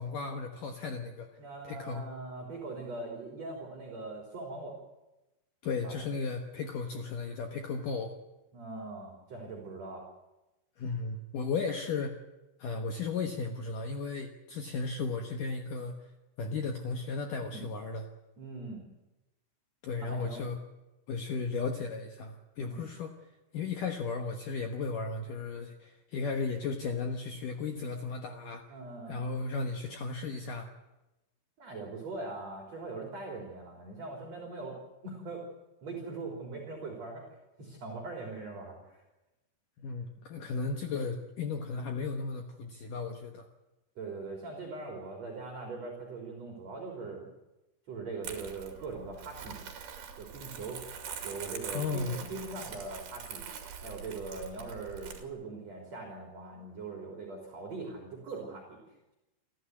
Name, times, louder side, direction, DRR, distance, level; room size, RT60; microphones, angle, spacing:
voice 1, 0.0-1.3 1.6-2.0 5.6-8.1 10.8-12.2 12.6-15.9 16.4-18.0 19.8-20.6 21.1-23.1 23.5-28.7 29.1-30.7 39.8-43.4 51.7-52.2, left 4 dB, 85° left, 4 dB, 1.8 m, -35 dB
voice 2, 1.4-4.8 5.8-5.9 8.5-10.0 17.4-17.6 18.4-18.8 19.9-20.4 22.7-22.9 28.7-29.2 31.6-35.4 35.8-37.3 37.6-39.0 44.0-47.3 47.9-49.6 50.2-50.8 51.2-53.5 53.8-58.8, right 3 dB, 35° right, 0 dB, 4.1 m, -41 dB
Crumpling crinkling, 48.2-55.2, right 7 dB, 55° right, 3.9 m, -44 dB
29.5 x 12.5 x 9.5 m, 1.0 s
omnidirectional pair, 5.9 m